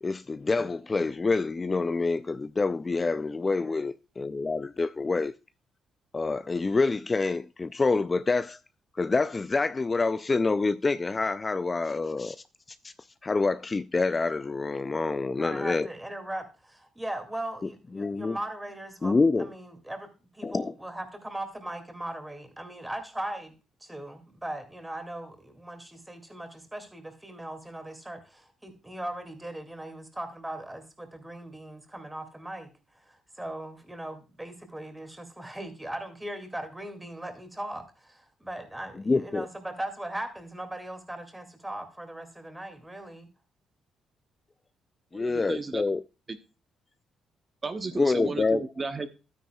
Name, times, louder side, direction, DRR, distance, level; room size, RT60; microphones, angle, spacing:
voice 1, 0.0-5.3 6.1-8.6 9.0-12.4 12.8-12.9 13.2-15.9 18.0-18.4 19.0-19.5 20.4-20.7 39.1-39.4 45.1-46.0 48.0-48.6, left 3 dB, 25° left, 0.4 m, -27 dB
voice 2, 15.4-20.1 20.3-23.5 23.8-43.3, right 1 dB, 10° right, 2.2 m, -39 dB
voice 3, 45.1-45.8 46.3-46.4 47.6-49.1, right 4 dB, 35° right, 0.9 m, -34 dB
12.5 x 9.5 x 2.3 m
cardioid pair, 90°, 0 cm